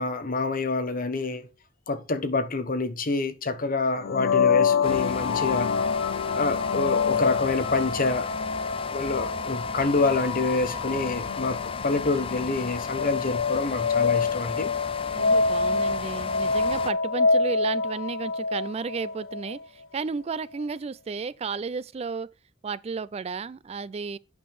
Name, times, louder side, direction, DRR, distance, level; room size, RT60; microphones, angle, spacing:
voice 1, 0.0-1.5 1.9-5.7 6.3-8.3 8.9-14.7, left 3 dB, 45° left, 1.0 m, -27 dB
sound 1, 4.0-19.6, left 5 dB, 80° left, 0.6 m, -27 dB
sound 2, 4.8-16.9, left 5 dB, 30° left, 0.5 m, -34 dB
voice 2, 15.1-22.3 22.6-24.2, right 5 dB, 30° right, 0.3 m, -33 dB
8.5 x 5.4 x 4.8 m
head